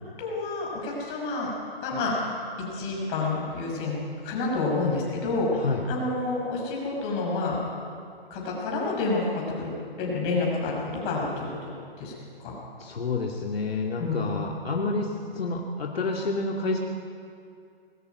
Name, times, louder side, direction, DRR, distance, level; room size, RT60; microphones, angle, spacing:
voice 1, 0.2-1.5 1.8-2.1 2.7-4.0 4.2-5.6 5.9-7.6 8.3-9.7 10.0-11.6 12.0-12.1 12.4-12.5 14.0-14.3, left 3 dB, 25° left, -3 dB, 6.0 m, -28 dB
voice 2, 12.8-16.8, left 3 dB, 70° left, 0 dB, 2.4 m, -29 dB
20.5 x 13.5 x 9.4 m, 2.4 s
hypercardioid pair, 150°, 31 cm